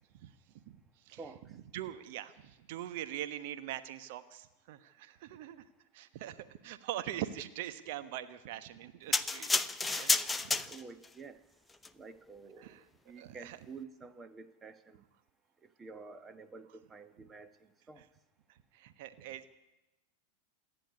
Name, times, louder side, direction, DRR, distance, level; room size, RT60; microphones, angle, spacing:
voice 1, 0.1-1.2 1.5-5.6 5.9-9.5 9.9-10.7 12.6-12.9 13.1-13.6 18.0-18.1 18.5-19.6, right 12 dB, 50° right, 1.2 m, -43 dB
voice 2, 1.2-1.6 10.6-11.4 11.9-15.0 15.8-18.0, right 4 dB, 15° right, 1.4 m, -50 dB
sound 1, 9.1-11.1 11.7-11.9, left 3 dB, 10° left, 0.7 m, -30 dB
27.0 x 10.0 x 9.8 m
figure-of-eight pair, 90°, 0 cm